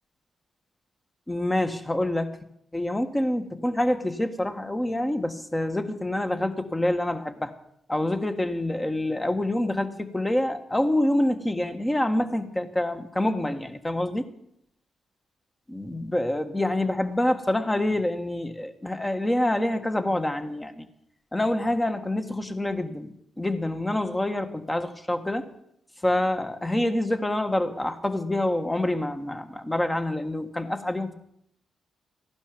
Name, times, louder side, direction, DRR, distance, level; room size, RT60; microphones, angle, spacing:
voice 1, 1.3-2.4 2.7-7.5 7.9-14.3 15.7-20.9 21.3-25.5 26.0-31.1, left 1 dB, 15° left, 8 dB, 1.6 m, -26 dB
15.0 x 11.5 x 5.2 m, 0.72 s
cardioid pair, 65°, 0 cm